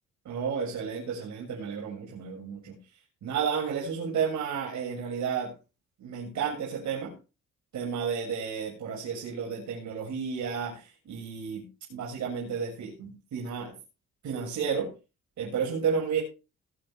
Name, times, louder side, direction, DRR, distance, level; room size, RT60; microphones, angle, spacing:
voice 1, 0.2-2.8 3.2-5.5 6.0-7.1 7.7-13.7 14.2-14.9 15.4-16.2, right 6 dB, 70° right, -4 dB, 6.8 m, -32 dB
21.0 x 9.0 x 3.6 m, 0.32 s
cardioid pair, 90°, 30 cm